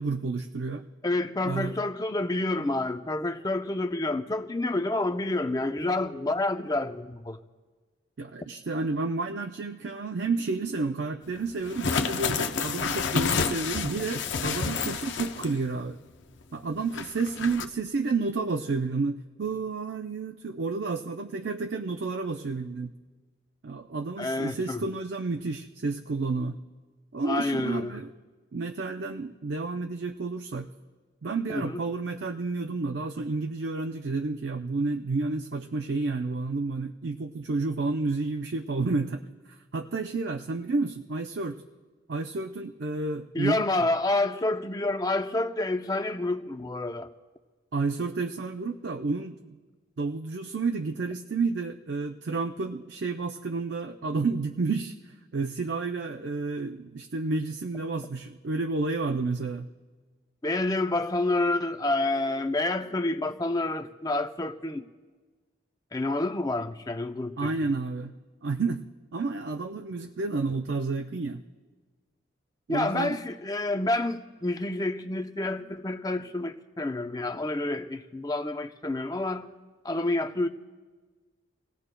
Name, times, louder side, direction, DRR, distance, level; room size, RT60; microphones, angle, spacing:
voice 1, 0.0-0.8 1.4-1.7 8.2-16.0 16.5-22.9 23.6-26.6 27.1-28.1 28.5-30.7 31.2-41.6 42.1-43.7 47.7-49.6 50.0-59.7 67.4-68.1 68.4-68.9 69.1-71.4 72.7-73.2, right 3 dB, 60° right, 0.5 m, -30 dB
voice 2, 1.0-7.4 24.2-24.8 27.2-28.0 31.5-31.7 43.3-47.1 60.4-64.9 65.9-67.5 72.7-79.5 79.8-80.5, left 2 dB, 20° left, 0.5 m, -28 dB
sound 1, 11.6-15.7 16.0-16.1 16.9-17.7, left 5 dB, 65° left, 0.6 m, -29 dB
28.5 x 18.0 x 2.2 m
head